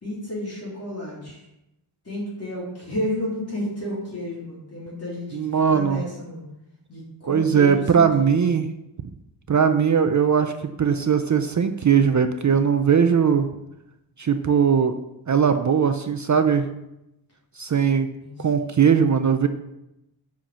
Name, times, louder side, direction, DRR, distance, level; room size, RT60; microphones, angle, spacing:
voice 1, 0.0-1.4 2.0-5.4 5.7-6.4 6.9-8.4 17.7-18.7, left 1 dB, 30° left, -5 dB, 3.3 m, -32 dB
voice 2, 5.3-6.0 7.3-8.7 9.5-13.5 14.2-15.0 15.3-16.7 17.6-18.1 18.4-19.5, right 7 dB, 40° right, 8 dB, 0.5 m, -19 dB
7.7 x 5.8 x 6.8 m, 0.89 s
wide cardioid pair, 165°, 48 cm